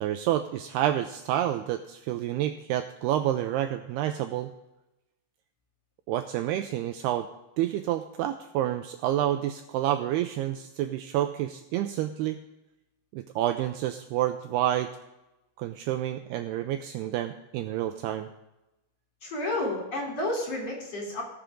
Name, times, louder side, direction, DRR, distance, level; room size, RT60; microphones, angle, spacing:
voice 1, 0.0-4.5 6.1-7.3 7.6-12.4 13.1-14.9 15.6-18.3, right 12 dB, 80° right, 7 dB, 2.4 m, -29 dB
voice 2, 19.2-21.2, left 1 dB, 35° left, -2 dB, 4.1 m, -31 dB
18.5 x 7.1 x 3.7 m, 0.96 s
omnidirectional pair, 5.1 m